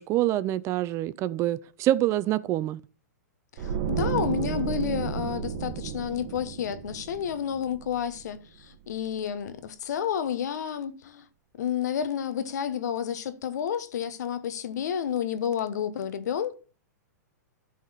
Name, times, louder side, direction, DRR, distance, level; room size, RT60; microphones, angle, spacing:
voice 1, 0.0-2.8, right 14 dB, 30° right, 0.5 m, -26 dB
voice 2, 3.6-11.2 11.6-16.5, left 8 dB, 70° left, 1.1 m, -30 dB
sound 1, 3.6-8.7 8.9-9.2, right 8 dB, 50° right, 1.6 m, -32 dB
12.0 x 4.2 x 5.6 m
hypercardioid pair, 130°, 9 cm